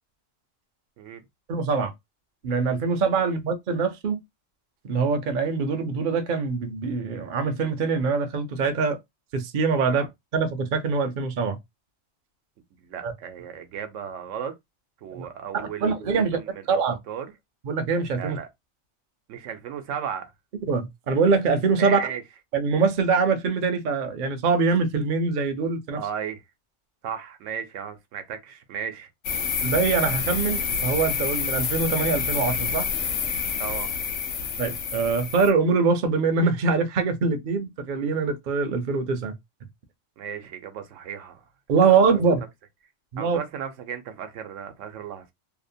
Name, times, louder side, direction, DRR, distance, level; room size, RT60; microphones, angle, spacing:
voice 1, 1.5-1.9 2.4-4.2 4.8-9.0 9.3-10.1 10.3-11.6 13.0-13.1 15.1-15.3 15.5-16.4 16.7-17.0 17.6-18.4 20.7-22.0 22.5-26.0 29.6-32.9 34.6-39.3 41.7-42.4 43.1-43.4, right 4 dB, 55° right, 0.6 m, -23 dB
voice 2, 12.8-14.5 15.0-17.3 18.2-18.5 19.3-20.3 21.8-22.2 25.9-26.4 27.0-29.1 33.6-33.9 40.2-41.4 43.2-45.3, right 8 dB, 85° right, 1.0 m, -35 dB
sound 1, 29.2-35.5, left 6 dB, 75° left, 0.9 m, -28 dB
2.8 x 2.0 x 2.5 m
omnidirectional pair, 1.3 m